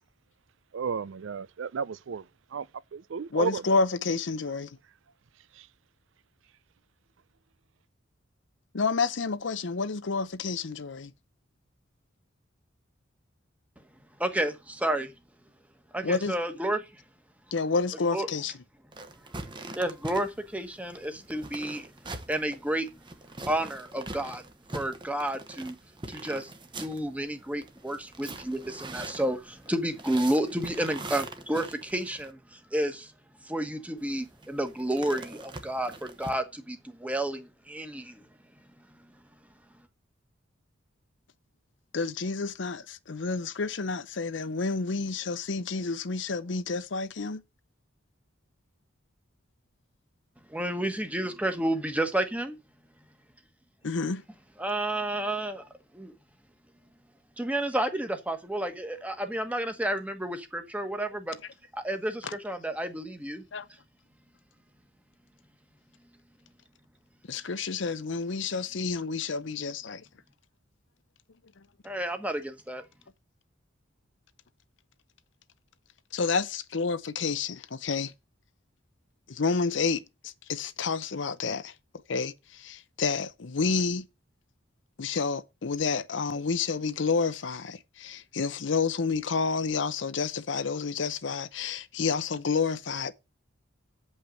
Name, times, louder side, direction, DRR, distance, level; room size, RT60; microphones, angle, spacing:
voice 1, 0.7-2.7 2.9-3.6 5.5-5.7, right 6 dB, 85° right, 0.4 m, -33 dB
voice 2, 3.3-4.8 8.7-11.1 16.0-16.4 17.5-18.5 41.9-47.4 53.8-54.2 62.2-62.3 63.5-63.7 67.3-70.0 76.1-78.1 79.3-81.7 82.1-84.1 85.0-93.1, left 4 dB, 70° left, 0.7 m, -29 dB
voice 3, 14.2-15.1 15.9-16.9 18.1-18.3 19.6-21.9 22.3-22.9 23.4-24.4 24.7-25.8 26.1-26.5 26.8-33.1 33.4-38.3 50.5-52.6 54.6-55.7 55.9-56.1 57.4-61.3 61.7-63.4 71.8-72.9, right 1 dB, 5° right, 1.3 m, -31 dB
sound 1, 18.9-32.3 34.0-36.3, right 2 dB, 25° right, 1.0 m, -43 dB
8.5 x 5.5 x 7.5 m
head